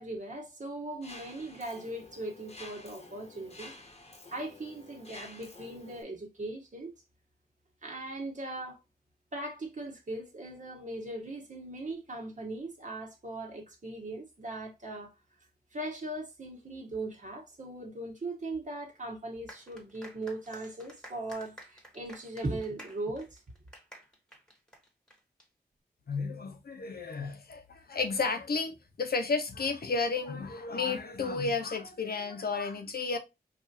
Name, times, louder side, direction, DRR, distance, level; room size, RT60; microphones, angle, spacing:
voice 1, 0.0-3.7 4.3-6.9 7.8-8.8 9.3-15.1 15.7-23.4, right 2 dB, 50° right, 1.5 m, -39 dB
Mechanisms, 1.0-6.0, left 2 dB, 40° left, 1.0 m, -50 dB
sound 1, 19.5-25.4, equal, 5° left, 1.4 m, -52 dB
voice 2, 26.1-33.2, left 4 dB, 70° left, 0.8 m, -32 dB
4.7 x 2.6 x 2.7 m
wide cardioid pair, 85°, 17 cm